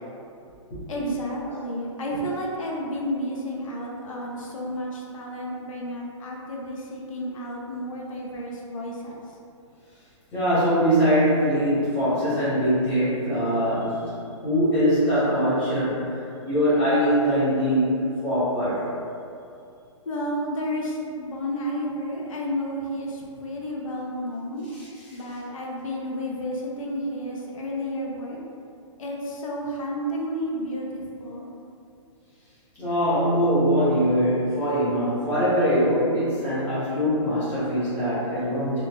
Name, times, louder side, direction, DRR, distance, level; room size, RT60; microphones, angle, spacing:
voice 1, 0.9-9.4 20.1-24.7 25.1-28.4 29.0-31.5 35.7-35.8, equal, 80° left, -2 dB, 0.5 m, -31 dB
voice 2, 10.3-14.2 14.4-16.1 16.4-18.9 32.8-38.8, equal, 10° left, -13 dB, 0.7 m, -22 dB
2.9 x 2.1 x 2.8 m, 2.5 s
hypercardioid pair, 170°, 17 cm